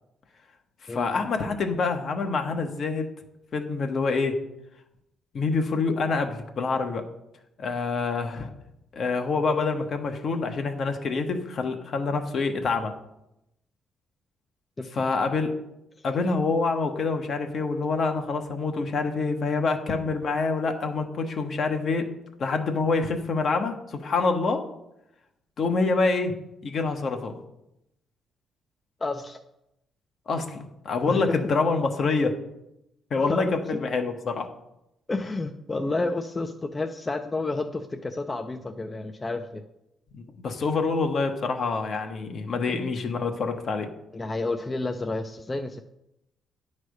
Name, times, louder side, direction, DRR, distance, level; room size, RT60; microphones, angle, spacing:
voice 1, 0.9-3.1 3.5-4.4 5.3-7.0 7.6-8.5 8.9-12.9 14.9-15.5 16.0-22.1 22.4-24.6 25.6-26.3 26.6-27.4 30.3-32.3 33.1-34.5 40.1-43.9, left 4 dB, 55° left, 5 dB, 1.0 m, -26 dB
voice 2, 29.0-29.4 31.1-31.4 33.2-33.8 35.1-39.6 42.7-42.8 44.1-45.8, left 2 dB, 25° left, 5 dB, 0.4 m, -30 dB
9.4 x 3.2 x 6.3 m, 0.86 s
cardioid pair, 90°, 0 cm